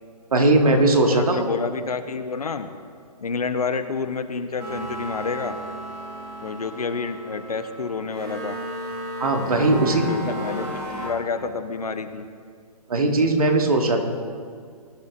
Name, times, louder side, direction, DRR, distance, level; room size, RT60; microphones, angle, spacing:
voice 1, 0.3-1.5 9.2-10.1 10.6-10.7 12.9-14.0, right 2 dB, 65° right, 3 dB, 1.8 m, -19 dB
voice 2, 1.1-2.7 3.2-5.6 6.4-8.6 9.9-10.7 10.9-12.3, left 4 dB, 70° left, 9 dB, 1.0 m, -29 dB
sound 1, 4.6-11.1, equal, 20° right, 2.4 m, -34 dB
20.0 x 10.5 x 2.5 m, 2.2 s
figure-of-eight pair, 135°, 20 cm